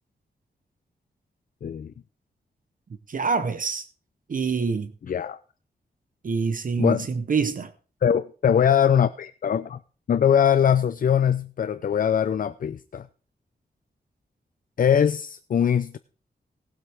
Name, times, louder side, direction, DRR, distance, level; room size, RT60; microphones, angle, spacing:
voice 1, 1.6-1.9 5.1-5.4 6.8-7.1 8.0-9.8 10.1-13.1 14.8-16.0, left 8 dB, 55° left, 0.5 m, -22 dB
voice 2, 3.1-3.9 4.3-4.9 6.2-7.7, right 5 dB, 50° right, 0.9 m, -26 dB
19.0 x 7.8 x 3.5 m
wide cardioid pair, 115°, 17 cm